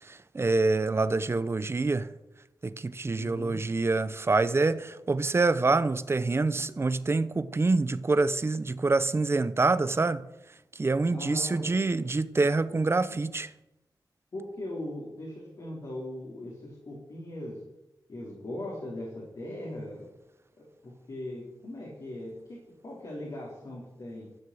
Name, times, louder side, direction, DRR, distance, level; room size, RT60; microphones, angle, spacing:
voice 1, 0.0-2.1 2.6-10.3 10.7-13.5, right 3 dB, 35° right, 0.7 m, -26 dB
voice 2, 3.1-3.6 11.1-11.7 12.7-12.8 13.1-13.2 14.3-17.6 18.1-20.1 20.8-24.3, left 1 dB, 55° left, 4.1 m, -39 dB
13.0 x 7.5 x 7.8 m
wide cardioid pair, 85°, 8 cm